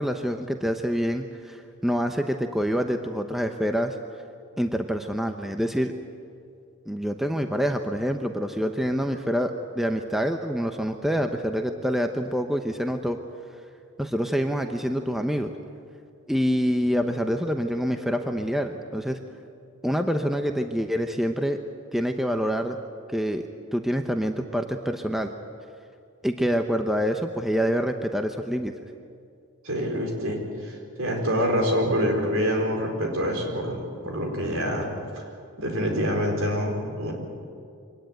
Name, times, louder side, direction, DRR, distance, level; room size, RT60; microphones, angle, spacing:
voice 1, 0.0-4.0 4.6-5.9 6.9-13.2 14.0-15.5 16.3-19.2 19.8-21.6 21.9-22.8 23.1-23.4 23.7-25.3 26.2-28.7, equal, ahead, 5 dB, 0.8 m, -26 dB
voice 2, 29.6-34.9 35.1-35.2 35.6-37.1, equal, 65° right, 1 dB, 4.7 m, -26 dB
24.5 x 18.5 x 9.2 m, 2.4 s
head